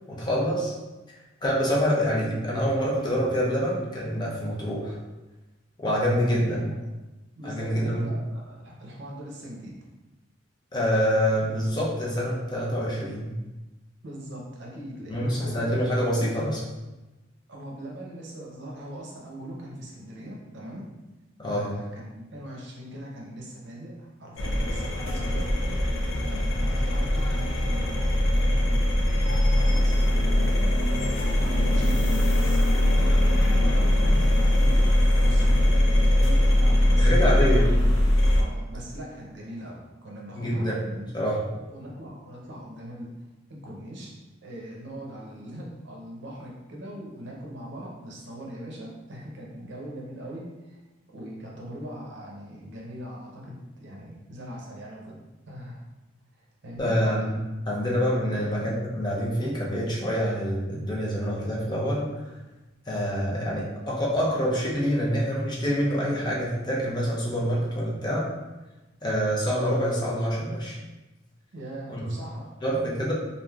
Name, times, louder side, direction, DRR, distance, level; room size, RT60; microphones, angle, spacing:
voice 1, 0.1-0.7 1.1-5.0 5.8-6.7 7.4-8.1 10.7-13.3 15.1-16.6 21.4-21.7 37.0-37.7 40.3-40.8 41.1-41.4 56.8-57.3 57.7-62.2 62.9-68.3 69.0-70.8 71.9-72.1 72.6-73.1, equal, 20° left, -5 dB, 0.6 m, -26 dB
voice 2, 6.4-6.8 7.3-9.7 11.4-11.5 14.0-15.8 17.5-20.9 21.5-25.5 26.2-30.6 31.3-37.3 38.4-41.1 41.5-43.1 43.5-44.1 44.4-50.8 51.1-55.2 55.5-55.8 56.6-57.0 58.3-58.4 71.5-72.5, equal, 60° right, -3 dB, 0.6 m, -40 dB
sound 1, 24.4-38.4, left 1 dB, 75° left, 0.5 m, -21 dB
3.3 x 2.5 x 2.3 m, 1.1 s
head